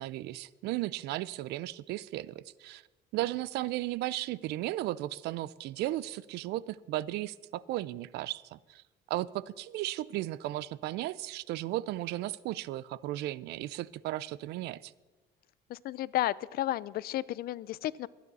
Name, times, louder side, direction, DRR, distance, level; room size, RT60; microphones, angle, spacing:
voice 1, 0.0-2.8 3.1-8.8 9.1-14.9, right 16 dB, 80° right, 21 dB, 0.4 m, -35 dB
voice 2, 15.7-18.1, left 14 dB, 65° left, 21 dB, 0.5 m, -32 dB
22.0 x 9.5 x 4.1 m, 1.2 s
cardioid pair, 110°, 17 cm